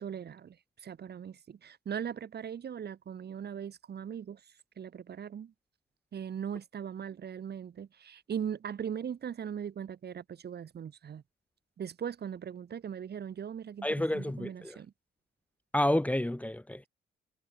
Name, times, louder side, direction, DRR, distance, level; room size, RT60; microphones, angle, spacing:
voice 1, 0.0-5.5 6.1-11.2 11.8-14.9, right 8 dB, 55° right, 6.3 m, -39 dB
voice 2, 13.8-14.8 15.7-16.9, left 1 dB, 5° left, 1.7 m, -30 dB
cardioid pair, 90°, 20 cm